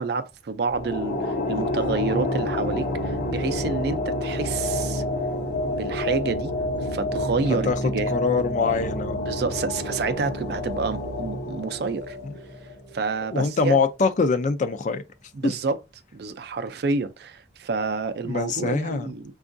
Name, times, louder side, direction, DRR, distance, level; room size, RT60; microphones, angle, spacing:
voice 1, 0.0-5.0 5.7-6.5 6.9-8.1 9.3-12.2 12.9-13.8 15.4-15.8 16.1-19.3, right 4 dB, 65° right, 0.4 m, -28 dB
sound 1, 0.7-13.2, left 1 dB, 65° left, 0.9 m, -28 dB
voice 2, 7.6-9.2 12.2-12.3 13.2-15.0 15.4-15.6 18.2-19.1, left 4 dB, 45° left, 0.4 m, -24 dB
4.5 x 2.3 x 2.5 m
head